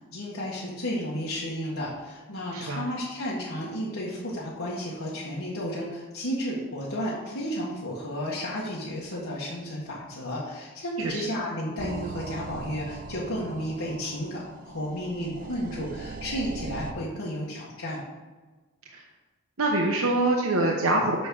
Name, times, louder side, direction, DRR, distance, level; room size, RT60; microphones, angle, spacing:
voice 1, 0.1-18.0, equal, 90° left, -6 dB, 1.7 m, -32 dB
voice 2, 2.5-2.9 11.0-11.3 18.9-19.0 19.6-21.3, right 2 dB, 90° right, 0 dB, 1.0 m, -25 dB
sound 1, 11.8-16.9, right 4 dB, 40° right, 0.4 m, -40 dB
6.3 x 6.1 x 6.3 m, 1.3 s
head